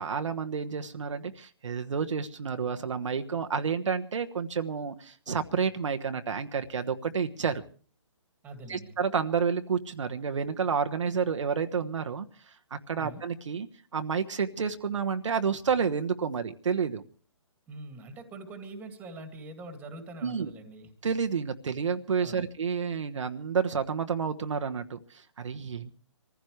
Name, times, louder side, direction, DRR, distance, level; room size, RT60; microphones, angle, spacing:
voice 1, 0.0-7.6 8.7-13.7 13.9-17.0 20.2-20.5 21.0-25.9, right 6 dB, 70° right, 6 dB, 1.2 m, -30 dB
voice 2, 8.4-9.0 13.0-13.2 17.7-20.9 22.2-22.4, right 2 dB, 10° right, 7 dB, 2.1 m, -44 dB
25.5 x 15.0 x 3.2 m, 0.41 s
hypercardioid pair, 155°, 16 cm